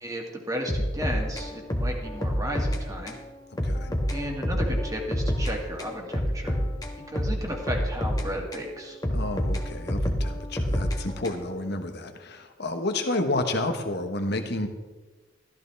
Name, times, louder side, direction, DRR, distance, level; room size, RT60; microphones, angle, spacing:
voice 1, 0.0-3.2 4.1-6.5 7.1-9.0, equal, 20° right, 1 dB, 2.1 m, -34 dB
sound 1, 0.7-2.8 3.1-3.2 3.6-5.5 5.8-8.7 9.0-11.6, equal, 20° left, 1.4 m, -28 dB
voice 2, 3.6-4.0 9.1-14.7, left 2 dB, 60° left, 6 dB, 1.4 m, -30 dB
14.0 x 13.5 x 3.5 m, 1.2 s
head